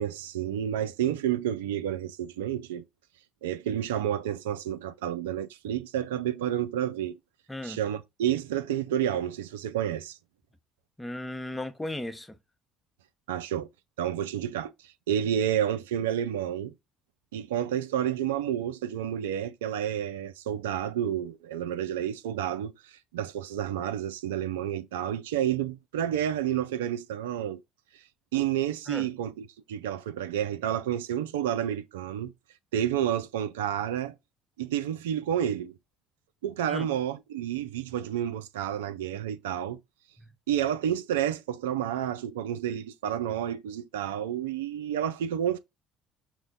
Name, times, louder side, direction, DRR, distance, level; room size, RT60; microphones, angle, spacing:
voice 1, 0.0-2.8 3.4-7.2 7.6-10.2 13.3-13.7 14.0-16.7 17.3-27.6 28.3-32.3 32.7-34.2 34.6-35.7 36.4-39.8 40.5-45.6, right 10 dB, 90° right, 0.3 m, -30 dB
voice 2, 7.5-7.8 11.0-12.4 28.9-29.1 36.7-36.9 40.2-40.3, left 1 dB, 10° left, 0.6 m, -36 dB
5.9 x 2.1 x 3.9 m
hypercardioid pair, 65°, 0 cm